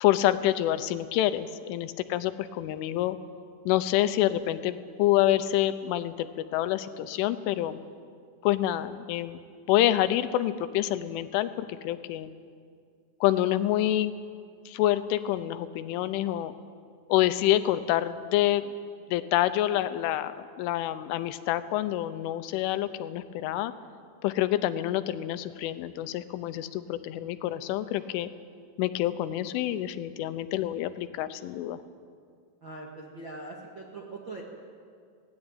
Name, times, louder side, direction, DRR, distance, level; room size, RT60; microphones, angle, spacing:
voice 1, 0.0-3.2 3.7-6.3 6.5-7.8 8.4-9.4 9.7-12.3 13.2-14.1 14.7-16.5 17.1-18.7 19.1-23.7 24.2-28.3 28.8-31.8, left 13 dB, 85° left, 12 dB, 3.3 m, -27 dB
voice 2, 32.6-34.4, right 2 dB, 50° right, -2 dB, 1.4 m, -41 dB
22.0 x 17.5 x 9.0 m, 2.2 s
omnidirectional pair, 5.5 m